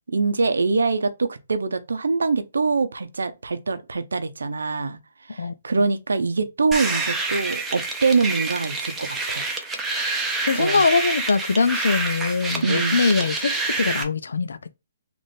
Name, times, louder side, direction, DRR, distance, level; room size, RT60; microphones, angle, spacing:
voice 1, 0.1-5.0 5.3-9.4 10.6-10.8 12.6-13.0, right 4 dB, 85° right, 0.7 m, -24 dB
sound 1, 6.7-14.0, right 3 dB, 5° right, 0.7 m, -27 dB
voice 2, 10.5-14.7, left 4 dB, 80° left, 0.4 m, -22 dB
4.0 x 2.5 x 3.5 m
hypercardioid pair, 150°, 0 cm